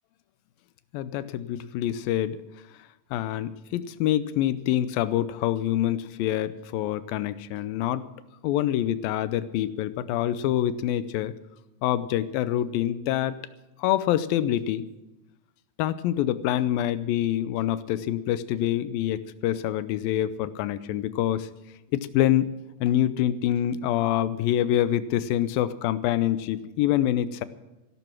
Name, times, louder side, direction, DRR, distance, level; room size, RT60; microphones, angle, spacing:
voice 1, 0.9-2.4 3.1-8.1 8.4-11.3 11.8-13.4 13.8-14.9 15.8-21.5 21.9-22.5 22.8-27.4, left 12 dB, 80° left, 15 dB, 2.4 m, -26 dB
15.5 x 12.5 x 6.0 m, 0.99 s
omnidirectional pair, 4.2 m